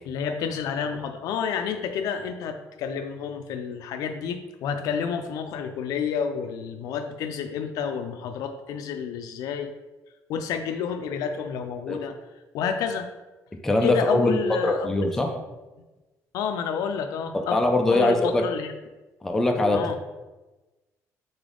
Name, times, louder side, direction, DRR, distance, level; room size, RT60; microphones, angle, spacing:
voice 1, 0.1-9.7 10.3-12.2 12.5-13.1 13.8-15.1 16.3-17.6 17.9-18.7 19.7-20.0, left 6 dB, 80° left, 7 dB, 0.4 m, -30 dB
voice 2, 13.6-15.3 17.3-18.4 19.2-19.8, left 2 dB, 5° left, 3 dB, 0.4 m, -22 dB
3.9 x 3.3 x 3.7 m, 1.1 s
cardioid pair, 145°, 6 cm